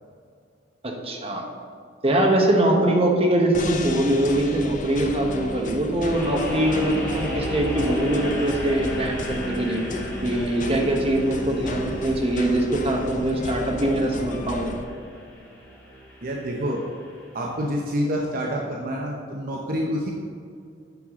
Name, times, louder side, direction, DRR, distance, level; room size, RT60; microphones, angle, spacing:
voice 1, 0.8-1.4 2.0-9.8 10.2-14.7, right 1 dB, 35° right, 1 dB, 1.1 m, -22 dB
sound 1, 3.5-14.8, left 1 dB, 45° left, 0.7 m, -34 dB
sound 2, 6.1-17.2, equal, 10° left, 1.8 m, -35 dB
voice 2, 16.2-16.9 17.3-20.1, equal, 50° right, -1 dB, 0.8 m, -27 dB
9.1 x 5.6 x 3.7 m, 2.3 s
head